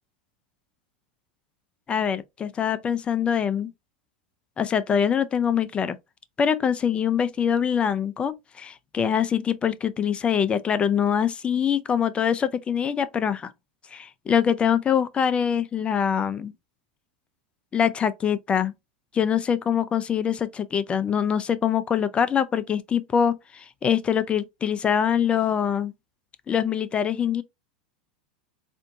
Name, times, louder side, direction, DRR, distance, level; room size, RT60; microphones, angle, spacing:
voice 1, 1.9-3.7 4.6-6.0 6.4-13.5 13.9-16.5 17.7-18.7 19.1-25.9 26.5-27.4, left 8 dB, 25° left, 0.4 m, -24 dB
4.3 x 2.6 x 2.5 m
hypercardioid pair, 90°, 5 cm